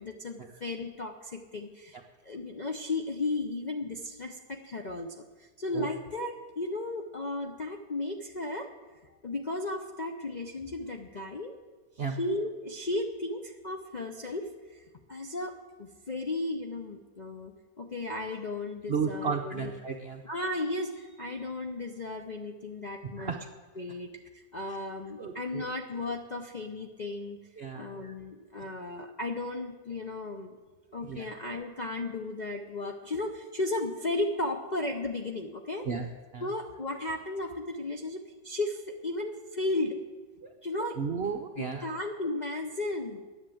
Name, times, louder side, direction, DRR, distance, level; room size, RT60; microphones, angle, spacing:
voice 1, 0.0-2.0 2.2-8.7 9.0-11.5 12.1-19.7 20.2-23.3 23.8-30.6 30.9-35.9 36.4-40.0 40.6-41.0 41.6-43.2, left 2 dB, 70° left, 3 dB, 0.4 m, -35 dB
voice 2, 18.9-20.2 23.2-23.4 25.2-25.6 27.6-27.9 31.1-31.3 35.9-36.0 36.3-36.5 40.4-40.5 41.0-41.8, right 5 dB, 55° right, 3 dB, 0.7 m, -33 dB
10.0 x 9.7 x 7.7 m, 1.3 s
omnidirectional pair, 1.8 m